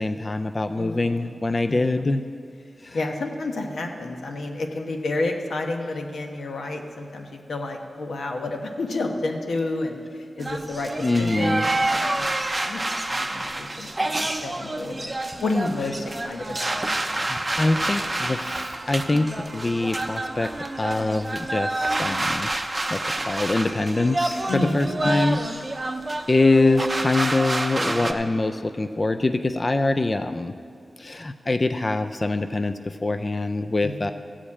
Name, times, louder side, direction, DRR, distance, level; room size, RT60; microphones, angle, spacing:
voice 1, 0.0-2.2 2.8-3.0 11.0-11.7 17.2-20.5 20.8-22.5 22.9-25.4 26.3-30.5 31.0-34.1, left 2 dB, 25° left, 8 dB, 0.3 m, -24 dB
voice 2, 0.8-1.3 1.7-2.1 2.9-10.9 11.2-12.3 12.6-15.1 15.4-18.0 24.5-25.2 33.8-34.1, left 2 dB, 85° left, 3 dB, 1.1 m, -30 dB
sound 1, 10.4-28.1, right 2 dB, 20° right, 0.6 m, -28 dB
14.5 x 5.0 x 8.4 m, 2.3 s
wide cardioid pair, 145°, 0 cm